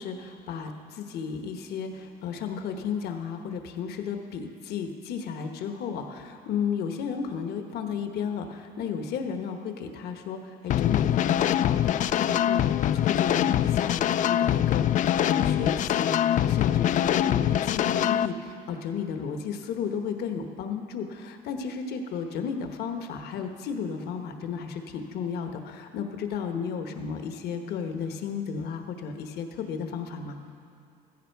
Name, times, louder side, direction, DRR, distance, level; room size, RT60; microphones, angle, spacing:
voice 1, 0.0-30.4, left 6 dB, 70° left, 5 dB, 1.2 m, -33 dB
sound 1, 10.7-18.3, left 11 dB, 50° left, 0.4 m, -24 dB
16.0 x 14.0 x 4.7 m, 2.5 s
cardioid pair, 110°, 17 cm